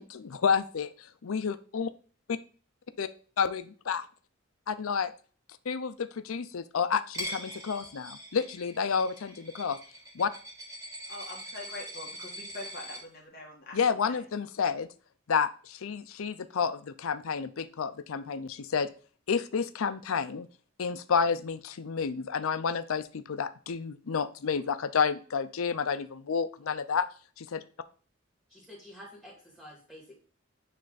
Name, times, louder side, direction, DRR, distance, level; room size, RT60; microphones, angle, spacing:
voice 1, 0.0-1.9 2.3-2.4 3.0-3.1 3.4-4.0 4.7-5.1 5.7-9.8 10.1-10.3 13.7-14.9 15.3-18.9 19.3-20.5 20.8-27.1 27.4-27.6, left 6 dB, 85° left, 12 dB, 0.5 m, -30 dB
Coin (dropping), 7.1-13.0, equal, 15° right, 2.0 m, -42 dB
voice 2, 11.1-13.8 14.0-14.2, left 2 dB, 50° left, -1 dB, 1.8 m, -43 dB
voice 3, 28.5-30.1, equal, 5° left, -3 dB, 2.3 m, -49 dB
9.7 x 3.3 x 4.0 m, 0.40 s
head